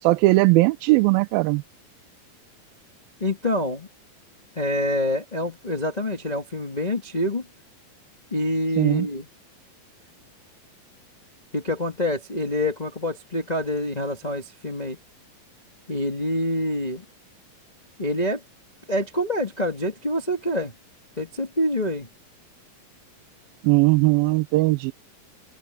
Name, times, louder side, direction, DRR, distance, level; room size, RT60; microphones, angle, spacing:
voice 1, 0.0-1.6 8.8-9.1 23.6-24.9, right 20 dB, 90° right, 2.5 m, -19 dB
voice 2, 3.2-3.9 4.5-7.4 8.3-9.3 11.5-15.0 15.9-17.0 18.0-18.4 18.9-20.7 21.2-22.1, left 1 dB, 25° left, 0.9 m, -26 dB
open air
omnidirectional pair, 4.1 m